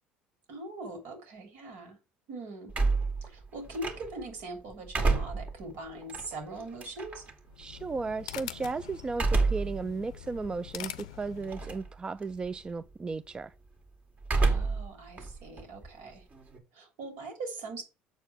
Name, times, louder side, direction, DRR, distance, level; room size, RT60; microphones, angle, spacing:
voice 1, 0.5-2.0 2.3-2.7 3.2-7.3 14.4-16.2 16.7-17.8, right 2 dB, 70° right, 3.0 m, -41 dB
sound 1, 2.7-4.3 4.7-7.3 9.1-9.8 10.3-10.4 11.4-11.9 12.2-12.7 14.2-14.9 15.2-16.6, right 3 dB, 40° right, 2.0 m, -29 dB
sound 2, 7.4-11.9, left 13 dB, 85° left, 0.5 m, -44 dB
voice 2, 7.6-13.5, right 4 dB, 25° right, 0.4 m, -35 dB
6.9 x 4.6 x 5.6 m
hypercardioid pair, 70°, 4 cm